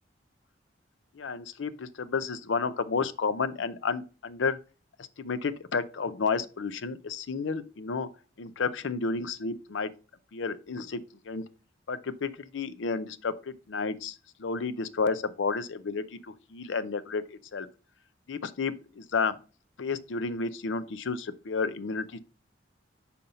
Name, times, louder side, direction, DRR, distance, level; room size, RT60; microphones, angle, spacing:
voice 1, 1.2-4.6 5.2-8.1 8.4-9.9 10.3-11.4 11.9-17.2 17.5-17.7 18.3-19.4 19.8-22.2, left 4 dB, 80° left, 0.5 m, -31 dB
5.5 x 4.2 x 5.1 m
head